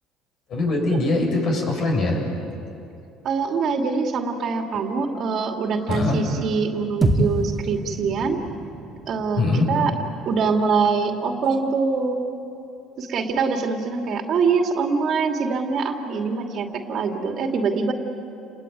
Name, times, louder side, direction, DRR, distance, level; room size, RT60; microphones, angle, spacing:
voice 1, 0.5-2.2 5.9-6.2 9.4-9.7, left 2 dB, 50° left, 2 dB, 7.1 m, -22 dB
voice 2, 3.2-8.4 9.1-9.9 10.3-12.2 13.0-17.9, right 5 dB, 50° right, 3 dB, 2.5 m, -24 dB
sound 1, 7.0-11.4, right 2 dB, 15° right, 2.3 m, -28 dB
29.5 x 21.0 x 9.3 m, 2.8 s
cardioid pair, 125°, 0 cm